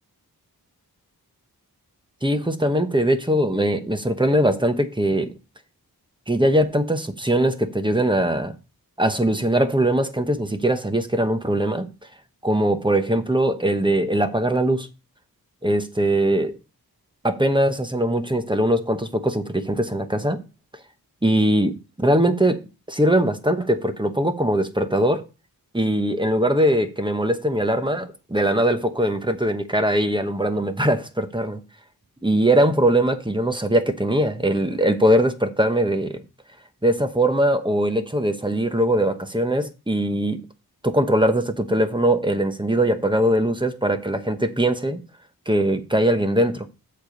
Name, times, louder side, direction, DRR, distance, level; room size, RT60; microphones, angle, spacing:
voice 1, 2.2-5.3 6.3-8.6 9.0-11.9 12.4-14.9 15.6-16.6 17.2-20.4 21.2-22.6 22.9-25.2 25.7-31.6 32.2-36.2 36.8-40.4 40.8-45.0 45.5-46.7, right 1 dB, 10° right, 1.0 m, -21 dB
8.1 x 6.8 x 3.9 m
wide cardioid pair, 85°, 38 cm